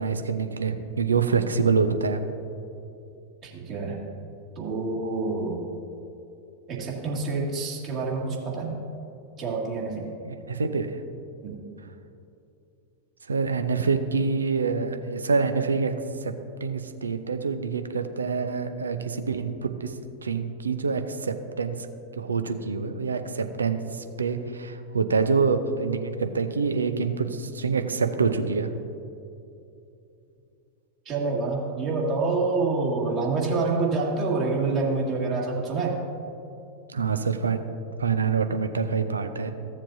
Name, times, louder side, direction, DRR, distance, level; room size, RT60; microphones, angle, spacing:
voice 1, 0.0-2.2 10.2-11.0 13.3-15.9 16.2-16.3 16.6-20.0 20.2-21.9 22.1-28.7 36.9-37.6 38.0-39.5, right 5 dB, 75° right, 8 dB, 0.6 m, -26 dB
voice 2, 3.4-4.1 4.6-5.6 6.7-8.8 9.4-10.1 11.4-11.6 31.1-36.0, right 3 dB, 35° right, -2 dB, 2.0 m, -27 dB
15.0 x 7.3 x 2.7 m, 2.7 s
figure-of-eight pair, 90°, 0 cm